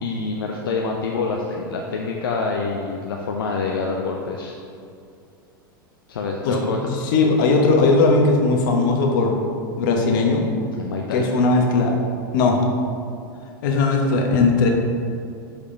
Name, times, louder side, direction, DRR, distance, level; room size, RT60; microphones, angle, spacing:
voice 1, 0.0-4.5 6.1-6.8 10.8-11.3 14.3-14.5, left 4 dB, 80° left, 0 dB, 0.6 m, -26 dB
voice 2, 6.8-9.4 9.8-10.5 11.1-11.9 12.3-12.6 13.6-14.7, left 3 dB, 65° left, 2 dB, 1.0 m, -18 dB
5.2 x 4.9 x 4.3 m, 2.4 s
hypercardioid pair, 95°, 12 cm